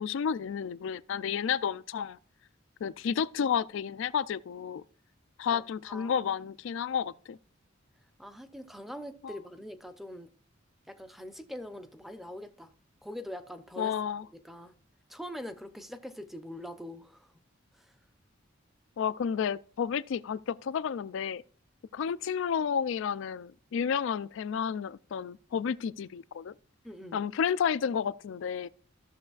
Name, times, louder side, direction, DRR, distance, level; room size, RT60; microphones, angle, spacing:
voice 1, 0.0-2.2 2.8-4.8 5.4-7.4 9.2-9.4 13.8-14.2 19.0-21.4 21.9-26.5 27.1-28.7, left 7 dB, 65° left, 0.3 m, -31 dB
voice 2, 5.5-6.3 8.2-10.3 10.9-12.7 13.0-13.9 14.3-14.7 15.1-17.3 17.8-17.9 26.8-27.2, left 1 dB, ahead, 0.6 m, -43 dB
14.5 x 6.4 x 2.4 m
head